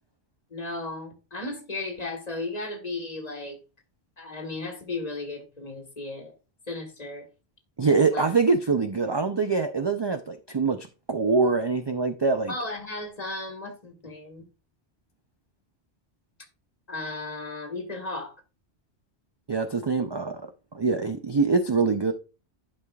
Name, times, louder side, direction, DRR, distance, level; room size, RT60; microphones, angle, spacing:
voice 1, 0.5-3.6 4.2-6.3 6.7-7.3 8.1-8.3 12.5-14.4 16.9-18.4, left 2 dB, 35° left, 1.6 m, -35 dB
voice 2, 7.8-12.5 19.5-22.1, right 4 dB, 45° right, 0.3 m, -24 dB
11.5 x 5.4 x 2.3 m
omnidirectional pair, 1.1 m